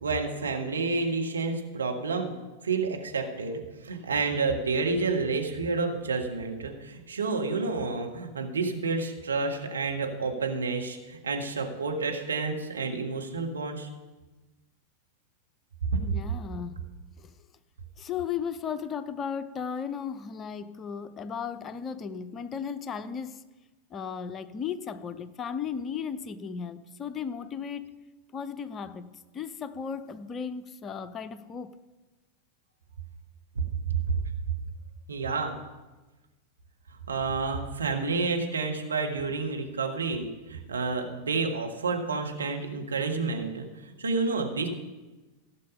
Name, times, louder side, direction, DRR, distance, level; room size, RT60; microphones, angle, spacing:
voice 1, 0.0-2.3 2.6-13.9 15.8-16.0 33.5-33.6 35.1-35.5 37.1-44.7, right 4 dB, 70° right, 1.5 m, -29 dB
voice 2, 16.0-16.8 17.2-17.3 18.0-23.4 23.9-28.0 28.3-31.7, left 7 dB, 25° left, 0.6 m, -35 dB
16.0 x 6.4 x 5.5 m
figure-of-eight pair, 90°, 0 cm